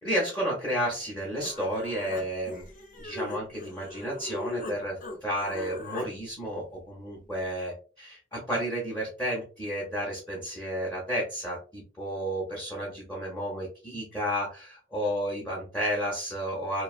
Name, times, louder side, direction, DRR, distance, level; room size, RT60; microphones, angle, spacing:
voice 1, 0.0-2.7 3.0-16.8, equal, 10° left, -4 dB, 0.7 m, -32 dB
Human voice, 1.0-1.1 1.4-4.8 5.0-6.1, left 2 dB, 45° left, 0.7 m, -39 dB
2.5 x 2.3 x 2.3 m, 0.35 s
head